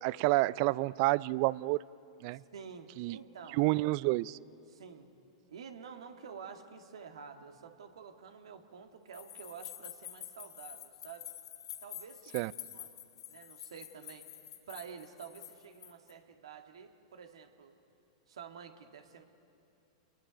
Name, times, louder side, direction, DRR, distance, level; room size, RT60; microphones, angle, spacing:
voice 1, 0.0-1.8 2.2-2.4 3.0-3.2 3.5-4.4 12.3-12.5, right 20 dB, 50° right, 21 dB, 0.4 m, -29 dB
voice 2, 2.3-3.6 4.7-5.1 5.5-11.3 11.8-12.9 13.3-14.3 14.7-17.7 18.3-19.3, right 6 dB, 75° right, 5 dB, 1.7 m, -49 dB
sound 1, 9.1-16.1, left 11 dB, 70° left, 2.4 m, -48 dB
28.0 x 22.0 x 5.2 m, 2.6 s
hypercardioid pair, 110°, 3 cm